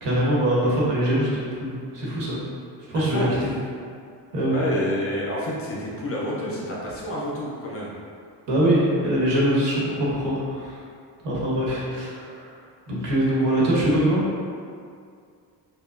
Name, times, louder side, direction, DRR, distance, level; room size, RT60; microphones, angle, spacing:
voice 1, 0.0-2.4 2.9-3.5 4.3-4.6 8.5-10.7 11.2-12.5 12.9-14.2, right 1 dB, 70° right, -6 dB, 1.1 m, -23 dB
voice 2, 2.9-3.4 4.4-7.9 13.3-13.4, left 1 dB, 35° left, -4 dB, 0.5 m, -29 dB
4.8 x 2.2 x 2.4 m, 2.3 s
cardioid pair, 150°, 43 cm